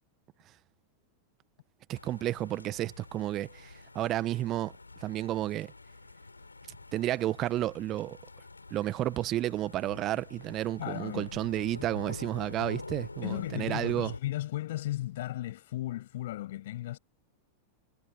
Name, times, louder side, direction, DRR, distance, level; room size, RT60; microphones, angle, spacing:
sound 1, 1.9-14.2, left 3 dB, 80° left, 7.1 m, -46 dB
voice 1, 1.9-4.7 5.0-5.7 6.9-8.2 8.7-14.1, right 14 dB, 35° right, 1.7 m, -31 dB
voice 2, 10.8-11.4 13.2-17.0, left 15 dB, 55° left, 7.8 m, -35 dB
figure-of-eight pair, 90°, 0 cm